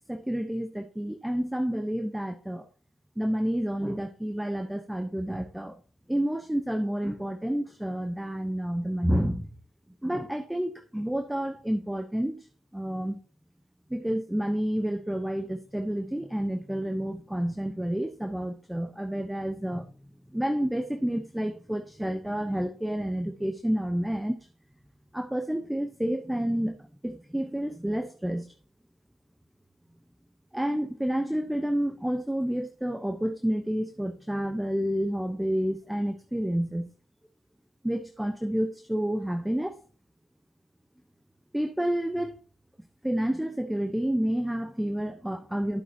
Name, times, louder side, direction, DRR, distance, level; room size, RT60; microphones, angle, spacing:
voice 1, 0.1-2.7 3.2-5.8 6.1-9.5 10.0-12.5 12.7-13.2 13.9-19.9 20.3-24.5 25.1-26.8 27.0-28.5 30.5-36.9 37.8-39.7 41.5-42.3 43.0-45.8, equal, 5° right, 8 dB, 0.8 m, -29 dB
10.5 x 7.7 x 2.8 m, 0.38 s
cardioid pair, 90°, 0 cm